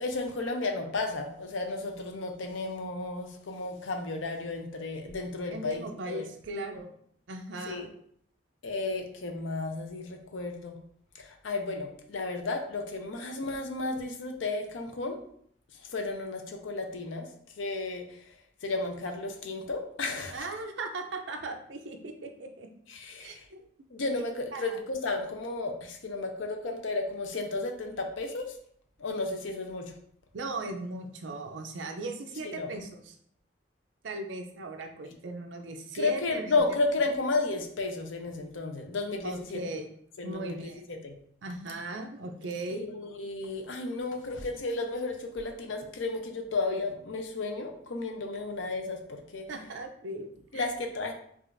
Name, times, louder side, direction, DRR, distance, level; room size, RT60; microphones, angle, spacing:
voice 1, 0.0-6.2 7.7-7.9 8.6-10.8 11.2-15.2 15.9-17.3 17.6-18.2 18.6-20.5 22.9-23.4 23.9-28.5 29.0-30.0 32.4-32.7 35.9-39.6 40.2-41.2 42.7-49.5 50.5-51.1, left 3 dB, 85° left, 4 dB, 0.6 m, -33 dB
voice 2, 5.5-7.0 7.3-7.9 20.3-22.7 23.2-23.6 24.0-24.1 24.5-24.8 30.3-33.1 34.0-36.5 39.2-39.9 40.2-40.8 41.4-42.8 49.5-50.7, right 2 dB, 75° right, 4 dB, 0.5 m, -38 dB
4.8 x 2.4 x 2.5 m, 0.65 s
head